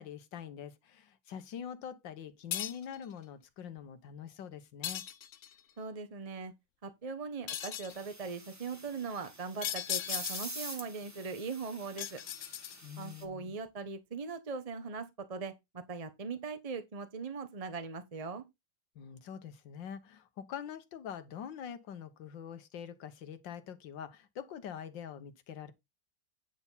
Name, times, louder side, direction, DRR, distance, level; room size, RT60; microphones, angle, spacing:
voice 1, 0.0-5.0 12.8-13.6 19.0-25.7, left 8 dB, 90° left, 1.8 m, -44 dB
sound 1, 2.5-3.0 4.8-5.6 7.5-8.0 9.6-10.7 12.0-13.0, left 11 dB, 65° left, 0.7 m, -37 dB
voice 2, 5.8-6.5 6.8-12.2 13.0-18.4, right 5 dB, 25° right, 0.8 m, -40 dB
sound 2, 7.9-13.2, right 1 dB, 10° right, 1.3 m, -47 dB
9.5 x 4.3 x 5.5 m
omnidirectional pair, 1.9 m